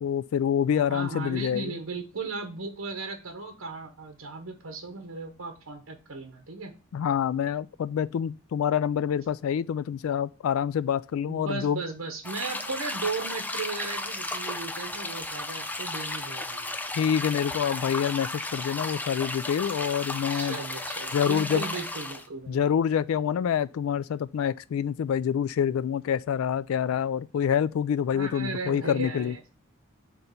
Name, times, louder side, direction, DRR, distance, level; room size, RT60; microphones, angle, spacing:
voice 1, 0.0-1.7 6.9-11.8 16.9-20.6 21.1-21.6 22.5-29.3, left 8 dB, 90° left, 0.3 m, -27 dB
voice 2, 0.8-6.7 11.2-16.7 20.3-22.6 28.1-29.4, right 3 dB, 85° right, 1.0 m, -36 dB
sound 1, 12.2-22.3, left 2 dB, 10° left, 0.6 m, -34 dB
6.2 x 3.9 x 5.5 m
head